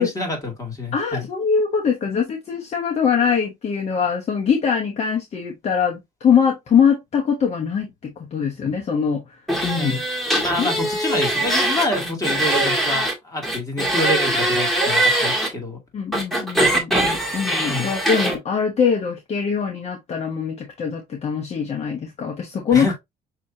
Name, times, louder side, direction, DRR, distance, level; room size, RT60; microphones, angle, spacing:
voice 1, 0.0-1.3 9.8-10.0 10.4-15.8 17.7-17.9 22.7-22.9, left 1 dB, 20° left, 2.4 m, -27 dB
voice 2, 0.9-10.0 10.6-10.7 15.9-22.9, left 6 dB, 40° left, 1.0 m, -22 dB
sound 1, 9.5-13.1 13.4-15.5 16.1-18.3, right 1 dB, ahead, 1.8 m, -21 dB
6.1 x 2.9 x 2.7 m
cardioid pair, 110°, 17 cm